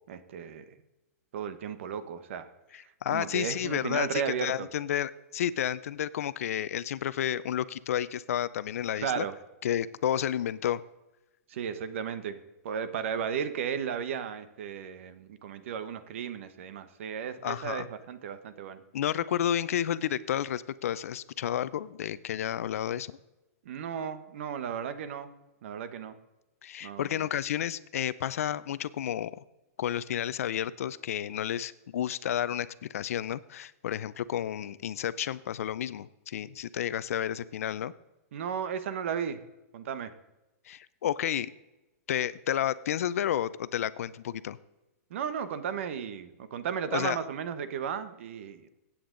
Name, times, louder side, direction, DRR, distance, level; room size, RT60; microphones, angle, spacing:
voice 1, 0.1-0.7 1.3-2.5 2.8-4.7 9.0-9.4 11.5-12.4 12.6-18.8 23.6-25.3 25.6-26.2 26.8-27.3 38.3-39.4 39.7-40.1 45.1-48.7, right 7 dB, 50° right, 12 dB, 1.0 m, -35 dB
voice 2, 3.0-9.3 9.6-10.8 17.4-17.9 18.9-23.2 26.6-29.3 29.8-37.9 40.7-41.5 42.1-44.6 46.9-47.2, left 10 dB, 65° left, 17 dB, 0.5 m, -31 dB
15.5 x 8.7 x 3.8 m, 1.0 s
hypercardioid pair, 170°, 8 cm